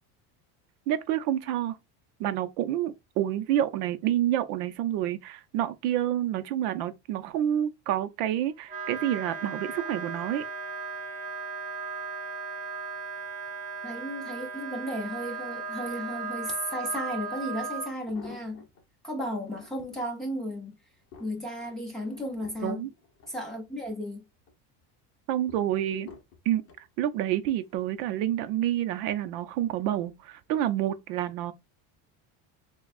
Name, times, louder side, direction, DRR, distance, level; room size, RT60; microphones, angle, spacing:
voice 1, 0.9-1.8 2.2-10.4 22.6-22.9 25.3-26.1 26.5-31.5, right 11 dB, 75° right, 0.7 m, -28 dB
Wind instrument woodwind instrument, 8.6-17.9, right 4 dB, 20° right, 0.4 m, -36 dB
voice 2, 13.8-18.6 19.0-20.7 21.2-22.9 23.3-24.2, equal, ahead, 0.9 m, -34 dB
sound 1, 17.1-17.2 17.8-18.8 19.3-20.0 20.6-24.0 24.4-24.8 25.5-26.9 27.6-28.0 28.3-28.4, left 5 dB, 30° left, 1.1 m, -51 dB
7.0 x 2.3 x 2.5 m
cardioid pair, 180°, 46 cm